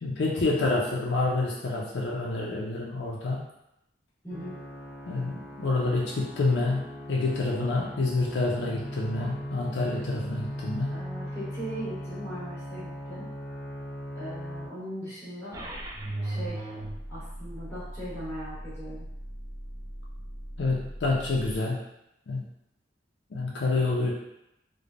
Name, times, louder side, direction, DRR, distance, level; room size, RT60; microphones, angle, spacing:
voice 1, 0.0-3.5 5.1-11.0 20.6-21.8 22.3-22.4 23.3-24.1, left 3 dB, 90° left, -4 dB, 0.5 m, -28 dB
voice 2, 4.2-4.6 10.9-13.3 14.1-15.6 16.2-16.7 17.1-19.1, right 1 dB, 10° left, -12 dB, 1.1 m, -39 dB
sound 1, 4.3-14.7, equal, 50° left, 0.8 m, -38 dB
sound 2, 15.5-21.6, right 1 dB, 20° right, 0.3 m, -38 dB
3.1 x 2.0 x 2.5 m, 0.84 s
head